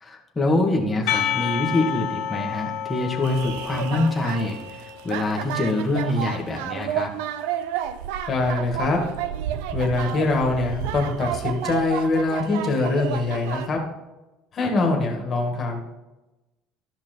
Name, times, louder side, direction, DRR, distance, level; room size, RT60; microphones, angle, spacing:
voice 1, 0.0-7.1 14.6-14.7, left 2 dB, 10° left, 0 dB, 1.5 m, -25 dB
Percussion, 1.1-5.0, left 9 dB, 65° left, 1.6 m, -29 dB
sound 1, 3.2-13.7, right 10 dB, 90° right, 0.6 m, -31 dB
voice 2, 8.3-9.0 9.7-13.8 14.5-15.8, left 3 dB, 25° left, 1 dB, 2.0 m, -23 dB
12.5 x 5.9 x 4.5 m, 1.0 s
cardioid pair, 165°, 0 cm